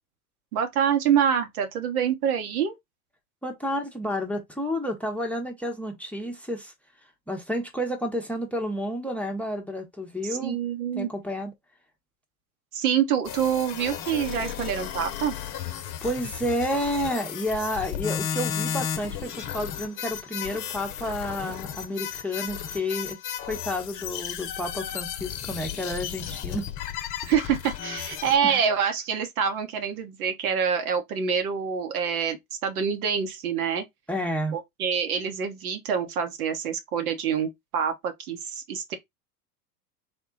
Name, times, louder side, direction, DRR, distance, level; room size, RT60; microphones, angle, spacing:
voice 1, 0.5-2.8 10.2-11.1 12.7-15.4 27.3-32.4 32.6-33.8 34.5-39.0, right 7 dB, 75° right, 1.1 m, -26 dB
voice 2, 3.4-6.7 7.3-10.6 11.0-11.5 16.0-26.7 28.4-28.6 34.1-34.6, equal, 5° left, 0.8 m, -30 dB
sound 1, 13.2-28.4, left 9 dB, 45° left, 0.8 m, -34 dB
3.6 x 2.2 x 3.7 m
hypercardioid pair, 95°, 45 cm